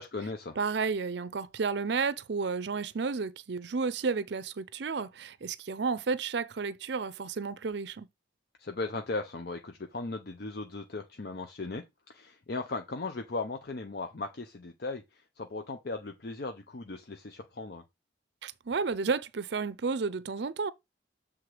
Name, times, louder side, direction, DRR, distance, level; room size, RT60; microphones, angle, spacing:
voice 1, 0.0-0.6 8.6-11.8 12.1-15.0 15.4-17.8, left 3 dB, 55° left, 0.7 m, -37 dB
voice 2, 0.6-8.1 18.4-20.7, right 4 dB, 60° right, 0.5 m, -32 dB
7.7 x 3.6 x 4.9 m
head